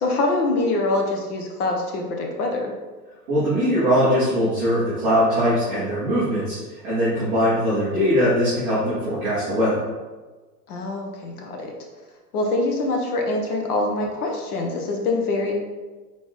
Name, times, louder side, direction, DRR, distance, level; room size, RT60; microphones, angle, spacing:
voice 1, 0.0-2.7 10.7-11.7 12.3-15.5, left 2 dB, 65° left, 1 dB, 1.1 m, -24 dB
voice 2, 3.3-6.6 6.8-9.8, equal, 10° right, -16 dB, 0.3 m, -21 dB
4.1 x 4.0 x 3.1 m, 1.3 s
supercardioid pair, 155°, 49 cm